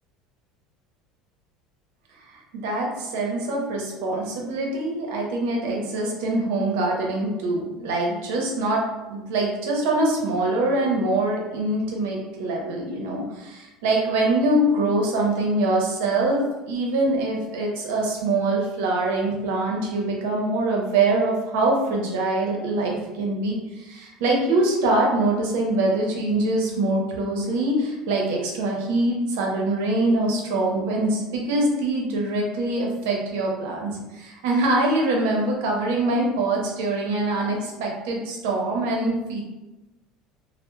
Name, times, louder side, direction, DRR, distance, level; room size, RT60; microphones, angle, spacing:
voice 1, 2.3-8.8 9.1-39.4, right 2 dB, 85° right, -1 dB, 0.6 m, -24 dB
2.2 x 2.0 x 3.0 m, 1.1 s
cardioid pair, 145°, 0 cm